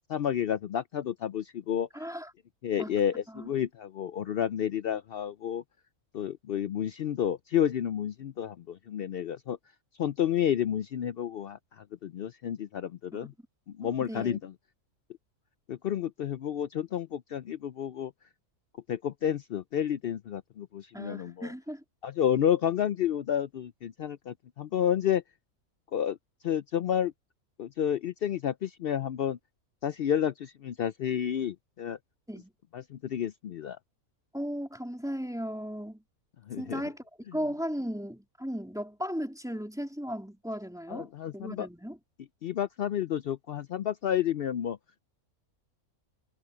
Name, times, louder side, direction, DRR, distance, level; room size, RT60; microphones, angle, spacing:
voice 1, 0.1-1.9 2.6-5.6 6.1-9.6 10.0-13.3 13.8-14.5 15.7-18.1 18.9-21.5 22.0-25.2 25.9-26.2 26.4-27.1 27.6-29.4 29.8-32.0 32.7-33.8 36.5-36.8 40.9-41.7 42.4-44.8, left 9 dB, 80° left, 0.5 m, -30 dB
voice 2, 1.9-2.3 2.8-3.0 3.3-3.5 13.8-14.4 20.9-21.8 32.3-32.5 34.3-36.0 36.6-37.1 37.3-42.0, equal, ahead, 3.0 m, -36 dB
omnidirectional pair, 1.6 m